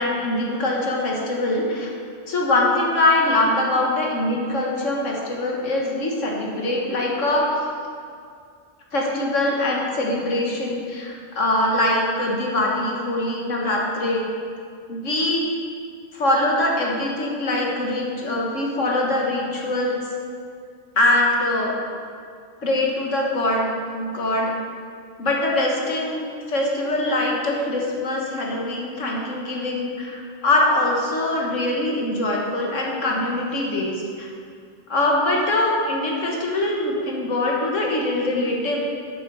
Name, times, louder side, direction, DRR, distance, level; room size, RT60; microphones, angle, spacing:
voice 1, 0.0-1.9 2.3-7.6 8.9-14.3 14.9-15.4 16.1-20.0 21.0-21.8 22.6-24.5 25.2-34.3 34.9-38.8, left 1 dB, 75° left, -2 dB, 2.0 m, -23 dB
11.0 x 8.9 x 4.9 m, 2.3 s
omnidirectional pair, 1.3 m